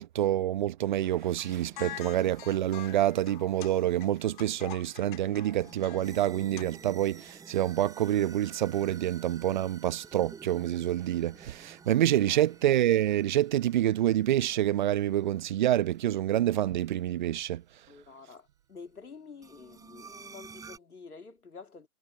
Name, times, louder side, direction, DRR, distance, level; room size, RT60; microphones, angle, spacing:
voice 1, 0.0-17.6, right 12 dB, 30° right, 1.1 m, -27 dB
sound 1, 1.2-6.6, left 15 dB, 35° left, 2.4 m, -46 dB
sound 2, 1.4-17.5 19.4-20.8, right 5 dB, 5° right, 7.7 m, -52 dB
voice 2, 17.9-21.9, left 5 dB, 80° left, 3.1 m, -48 dB
figure-of-eight pair, 140°, 44 cm